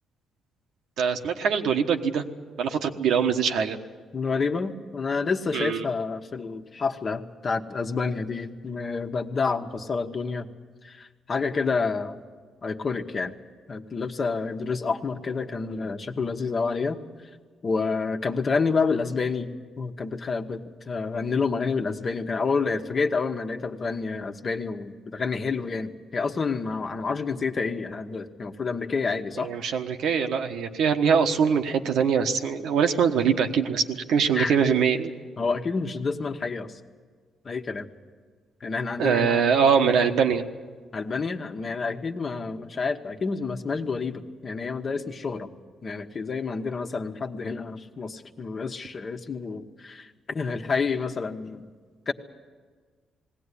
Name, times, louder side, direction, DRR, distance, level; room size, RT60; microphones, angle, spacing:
voice 1, 1.0-2.2 2.6-3.8 5.5-5.8 29.4-35.1 39.0-40.4, right 6 dB, 75° right, 4 dB, 1.4 m, -23 dB
voice 2, 4.1-10.5 10.8-12.2 12.6-13.3 13.7-17.0 17.6-19.5 19.8-29.5 34.3-34.5 35.4-36.8 37.4-37.9 38.6-39.4 40.9-45.5 45.8-51.7 52.1-52.2, left 4 dB, 40° left, 5 dB, 1.3 m, -29 dB
19.5 x 17.0 x 9.9 m, 1.5 s
cardioid pair, 90°, 0 cm